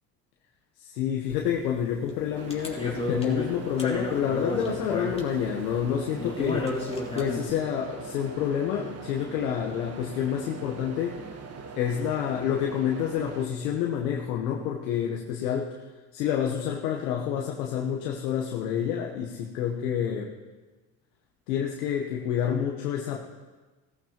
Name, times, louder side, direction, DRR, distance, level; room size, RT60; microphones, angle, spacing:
voice 1, 0.8-6.7 7.1-11.2 11.7-15.7 16.1-20.3 21.5-23.2, left 9 dB, 80° left, 0 dB, 1.2 m, -28 dB
sound 1, 1.3-1.8 2.1-7.6, left 2 dB, 15° left, 3.3 m, -32 dB
sound 2, 2.3-13.5, right 4 dB, 30° right, 1.4 m, -41 dB
17.0 x 14.0 x 3.0 m, 1.3 s
hypercardioid pair, 70°, 46 cm